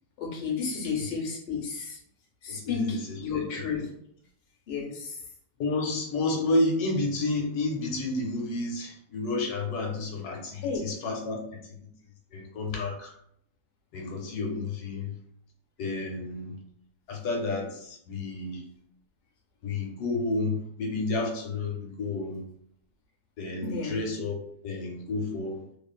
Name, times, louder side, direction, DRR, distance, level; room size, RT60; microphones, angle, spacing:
voice 1, 0.2-2.0 2.4-3.8 4.7-5.2 10.6-10.9 23.6-24.0, left 5 dB, 50° left, -1 dB, 0.7 m, -32 dB
voice 2, 2.5-2.9 3.3-3.8 5.6-11.4 12.3-13.1 13.9-15.1 15.8-16.5 17.1-18.6 19.6-22.4 23.4-24.4 24.6-25.6, left 2 dB, 80° left, 1 dB, 1.1 m, -30 dB
2.6 x 2.4 x 2.2 m, 0.69 s
omnidirectional pair, 1.7 m